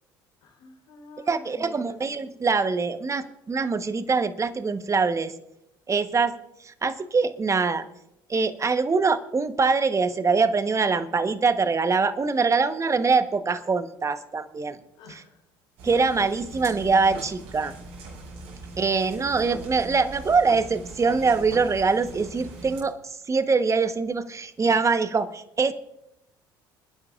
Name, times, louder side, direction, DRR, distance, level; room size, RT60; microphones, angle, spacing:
voice 1, 0.4-2.0 2.3-2.5 15.0-15.4 24.7-24.8, left 2 dB, 70° left, -2 dB, 4.2 m, -47 dB
voice 2, 1.3-5.3 5.9-6.4 6.6-7.8 8.3-14.8 15.8-17.7 18.8-25.7, right 4 dB, 25° right, 11 dB, 1.2 m, -23 dB
sound 1, 15.8-22.8, right 2 dB, 65° right, 6.2 m, -41 dB
30.0 x 10.0 x 2.5 m, 0.84 s
hypercardioid pair, 65°, 12 cm